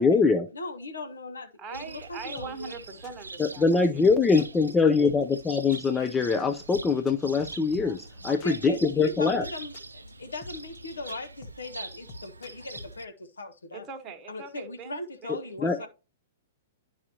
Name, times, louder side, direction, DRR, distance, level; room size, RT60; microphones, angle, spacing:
voice 1, 0.0-0.5 3.4-9.5 15.3-15.9, left 4 dB, 15° left, 0.5 m, -23 dB
voice 2, 0.5-2.7 8.3-13.9 14.3-15.9, left 1 dB, 75° left, 0.9 m, -39 dB
voice 3, 1.6-4.0 7.8-8.0 13.7-15.9, right 4 dB, 20° right, 1.2 m, -42 dB
Cricket, 1.7-13.0, right 3 dB, 80° right, 0.5 m, -44 dB
sound 1, 2.4-12.9, left 2 dB, 40° left, 1.1 m, -46 dB
11.0 x 4.8 x 2.8 m
figure-of-eight pair, 105°, 0 cm